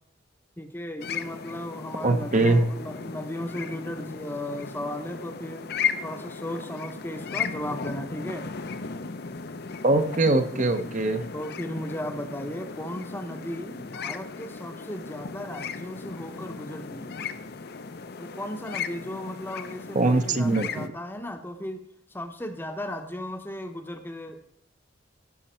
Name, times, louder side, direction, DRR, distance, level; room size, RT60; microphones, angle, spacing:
voice 1, 0.6-5.7 6.0-8.5 11.3-17.2 18.2-21.8 22.1-24.4, left 1 dB, 10° left, 6 dB, 0.8 m, -36 dB
sound 1, 1.0-20.9, left 6 dB, 55° left, 0.6 m, -36 dB
voice 2, 2.0-2.6 9.8-11.2 19.9-20.9, right 2 dB, 40° right, 8 dB, 0.8 m, -22 dB
15.5 x 6.3 x 4.4 m, 0.69 s
head